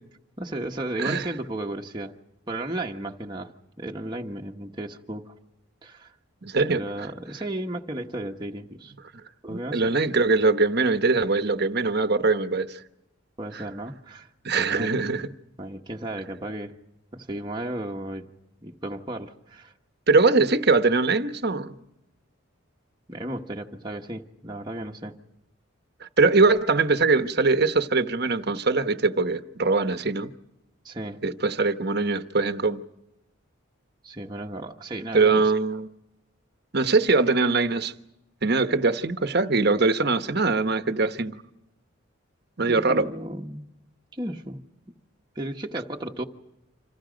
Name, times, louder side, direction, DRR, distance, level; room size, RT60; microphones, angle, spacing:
voice 1, 0.4-2.1 2.5-5.3 5.8-6.1 6.7-8.9 9.4-9.9 13.4-14.3 14.6-14.9 15.6-16.7 17.1-18.3 18.6-19.7 23.1-25.1 30.8-31.2 34.0-35.5 42.6-43.7 44.1-44.6 45.3-46.2, right 1 dB, 20° right, 1.2 m, -34 dB
voice 2, 6.4-6.8 9.5-12.8 14.4-15.3 20.1-21.8 26.0-30.3 31.2-32.8 35.1-35.9 36.7-37.9 38.4-41.4 42.6-43.1, right 3 dB, 50° right, 1.1 m, -22 dB
29.0 x 26.5 x 5.2 m
head